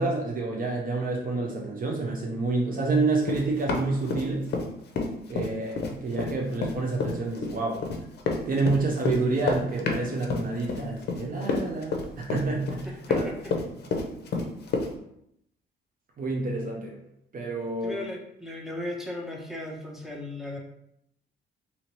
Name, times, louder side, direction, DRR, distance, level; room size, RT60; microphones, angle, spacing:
voice 1, 0.0-4.5 5.3-7.9 8.5-12.9 13.1-13.3 16.2-17.0 17.3-18.0, right 3 dB, 45° right, -1 dB, 0.6 m, -28 dB
Run, 3.2-4.7 5.0-14.9, left 4 dB, 55° left, 0.6 m, -29 dB
voice 2, 12.8-13.5 17.8-20.6, left 1 dB, ahead, -1 dB, 0.7 m, -36 dB
2.8 x 2.8 x 2.9 m, 0.77 s
cardioid pair, 90°, 20 cm